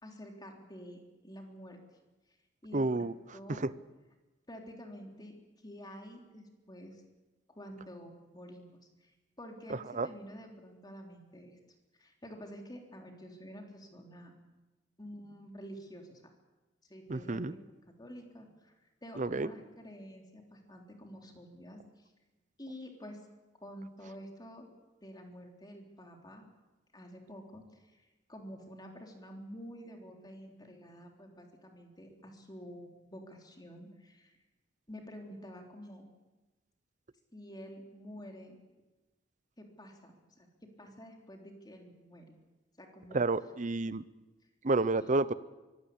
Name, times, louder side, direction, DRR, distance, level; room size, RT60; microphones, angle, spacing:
voice 1, 0.0-1.8 2.6-3.6 4.5-5.3 5.6-7.0 7.5-9.1 9.4-11.6 12.0-14.3 15.0-16.3 16.9-17.6 18.0-18.7 19.0-22.1 22.6-23.2 23.6-24.7 25.0-26.5 26.9-34.3 34.9-36.1 37.3-38.6 39.6-42.3 42.8-43.2 45.0-45.1, equal, 20° left, 2 dB, 3.6 m, -49 dB
voice 2, 2.7-3.1 3.5-3.7 10.0-10.1 17.1-17.5 19.2-19.5 43.1-44.0 44.6-45.3, right 3 dB, 40° right, 16 dB, 0.7 m, -30 dB
23.5 x 16.5 x 8.7 m, 1.1 s
head